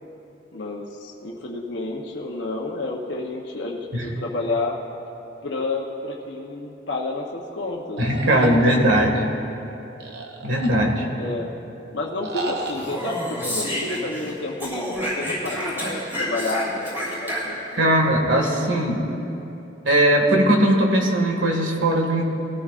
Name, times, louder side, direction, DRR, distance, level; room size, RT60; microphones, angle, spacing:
voice 1, 0.5-4.8 5.4-9.0 11.1-11.5 11.9-13.2 13.4-17.9, left 2 dB, 70° left, -2 dB, 0.9 m, -30 dB
sound 1, 8.0-9.3 10.0-11.1 12.2-13.0, right 3 dB, 60° right, 1.0 m, -34 dB
voice 2, 8.0-9.3 10.4-11.0 17.7-19.0 19.9-22.3, right 1 dB, 90° right, 1 dB, 1.9 m, -19 dB
Speech, 12.7-14.3 14.6-17.8, equal, 10° right, 3.4 m, -29 dB
20.5 x 13.5 x 2.5 m, 3.0 s
head